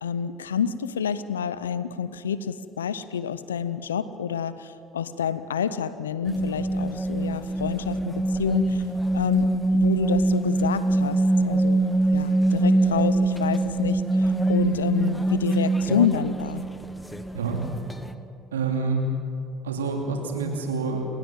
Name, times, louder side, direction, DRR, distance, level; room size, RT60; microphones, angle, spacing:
voice 1, 0.0-8.8 9.1-11.8 12.1-16.7, left 7 dB, 85° left, 15 dB, 0.7 m, -28 dB
sound 1, 6.3-18.1, right 2 dB, 10° left, 1.3 m, -24 dB
voice 2, 18.5-19.1 19.6-21.1, right 4 dB, 85° right, 2 dB, 2.7 m, -27 dB
28.5 x 16.0 x 7.6 m, 2.6 s
hypercardioid pair, 55°, 0 cm